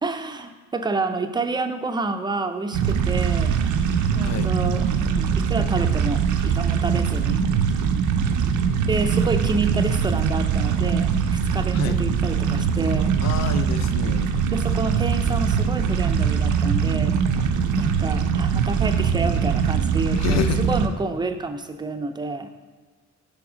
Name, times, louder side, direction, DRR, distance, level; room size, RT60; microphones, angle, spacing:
voice 1, 0.0-3.6 4.1-7.4 8.9-13.2 14.5-17.2 17.8-22.5, right 3 dB, 15° right, 7 dB, 0.4 m, -29 dB
sound 1, 2.7-20.9, right 7 dB, 75° right, 0.5 m, -22 dB
voice 2, 13.2-14.3 20.1-20.6, left 9 dB, 65° left, 9 dB, 0.5 m, -28 dB
6.1 x 3.5 x 4.9 m, 1.4 s
cardioid pair, 90°, 30 cm